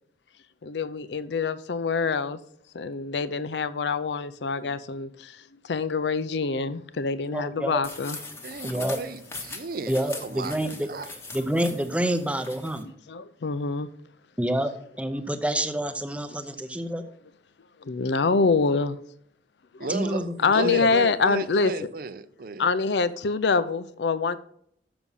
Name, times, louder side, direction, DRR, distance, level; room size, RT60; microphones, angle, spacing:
voice 1, 0.6-2.4 2.7-8.2 12.8-13.9 17.8-19.0 19.7-19.9 20.4-21.7 22.6-24.4, left 4 dB, 75° left, 0.5 m, -25 dB
voice 2, 7.3-7.8 8.6-9.0 9.9-10.9 11.3-12.9 14.4-14.7 15.0-17.0 19.9-20.3 20.6-20.9, right 1 dB, 5° right, 0.6 m, -27 dB
sound 1, 7.8-12.8, left 3 dB, 15° left, 0.9 m, -41 dB
voice 3, 8.4-10.6 10.9-11.1 19.8-22.6, right 4 dB, 55° right, 0.5 m, -34 dB
6.8 x 6.1 x 5.4 m
head